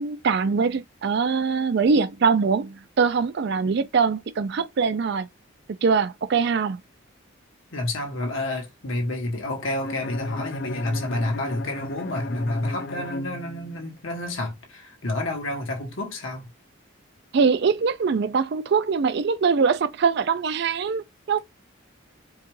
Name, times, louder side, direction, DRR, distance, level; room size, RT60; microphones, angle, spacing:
voice 1, 0.0-5.3 5.8-6.8 17.3-21.4, right 5 dB, 55° right, 0.4 m, -23 dB
voice 2, 7.7-16.5, left 1 dB, 70° left, 1.4 m, -29 dB
Bowed string instrument, 9.8-14.0, left 1 dB, 50° left, 0.5 m, -35 dB
4.6 x 2.3 x 3.1 m
head